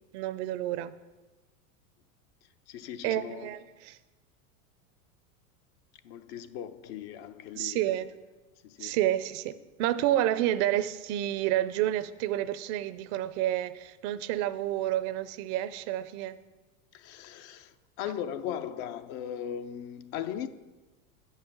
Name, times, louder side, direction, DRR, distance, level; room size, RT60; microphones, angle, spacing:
voice 1, 0.1-0.9 3.0-4.0 7.5-8.1 8.8-16.4, right 13 dB, 55° right, 0.6 m, -29 dB
voice 2, 2.7-3.5 6.0-8.0 8.6-9.0 16.9-20.5, left 9 dB, 55° left, 0.7 m, -38 dB
8.6 x 5.6 x 7.0 m
hypercardioid pair, 110°, 42 cm